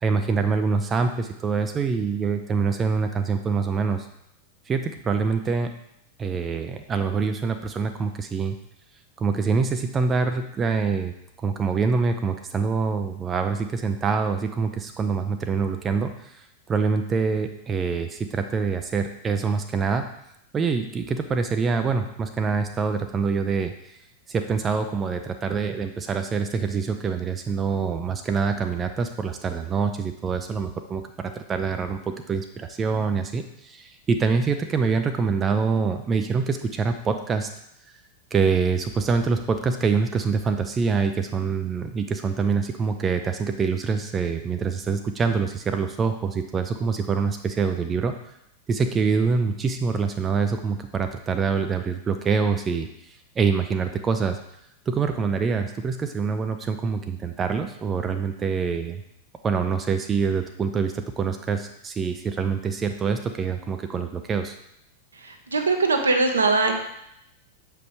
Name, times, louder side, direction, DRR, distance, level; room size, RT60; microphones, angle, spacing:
voice 1, 0.0-4.1 4.7-5.7 6.2-8.6 9.2-11.1 11.4-20.1 20.5-23.7 24.3-37.5 38.3-48.1 48.7-54.4 54.9-59.0 59.4-64.5, right 5 dB, 20° right, 6 dB, 0.5 m, -25 dB
voice 2, 65.2-66.7, right 3 dB, 75° right, 5 dB, 0.8 m, -21 dB
6.9 x 5.2 x 3.1 m, 0.76 s
figure-of-eight pair, 90°, 0 cm